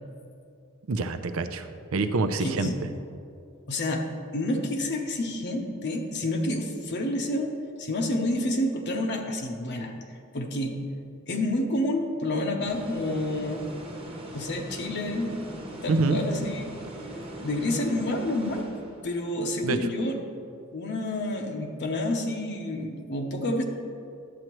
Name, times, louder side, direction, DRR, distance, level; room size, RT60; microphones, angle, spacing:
voice 1, 0.9-2.7 15.9-16.2 19.6-19.8, right 3 dB, 75° right, 9 dB, 0.5 m, -26 dB
voice 2, 2.4-2.8 3.7-7.5 7.8-9.9 10.3-10.8 11.3-13.7 14.3-15.4 15.8-16.7 17.4-18.7 19.0-20.2 20.7-23.6, left 1 dB, 55° left, 3 dB, 0.8 m, -29 dB
sound 1, 12.6-19.2, right 1 dB, 25° right, 1.2 m, -40 dB
11.0 x 7.7 x 3.0 m, 2.5 s
head